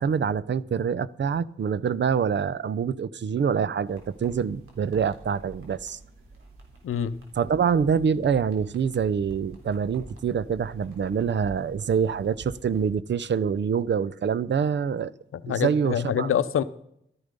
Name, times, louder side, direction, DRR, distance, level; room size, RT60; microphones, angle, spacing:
voice 1, 0.0-6.0 7.4-15.1 15.5-16.3, right 7 dB, 60° right, 0.5 m, -25 dB
sound 1, 3.9-12.9, right 2 dB, 90° right, 3.5 m, -48 dB
voice 2, 6.8-7.2 15.3-16.6, left 8 dB, 85° left, 0.6 m, -26 dB
13.0 x 10.5 x 5.3 m
cardioid pair, 65°, 21 cm